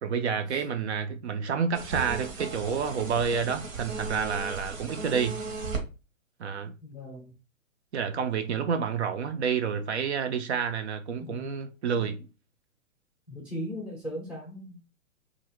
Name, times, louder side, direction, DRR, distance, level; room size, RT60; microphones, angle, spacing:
voice 1, 0.0-5.4 6.4-6.7 7.9-12.2, right 6 dB, 55° right, 0.5 m, -29 dB
sound 1, 1.7-5.8, right 4 dB, 70° right, 1.1 m, -36 dB
voice 2, 6.8-7.3 11.2-11.5 11.9-12.1 13.3-14.9, equal, ahead, 0.5 m, -38 dB
2.9 x 2.5 x 2.9 m
hypercardioid pair, 135°, 40 cm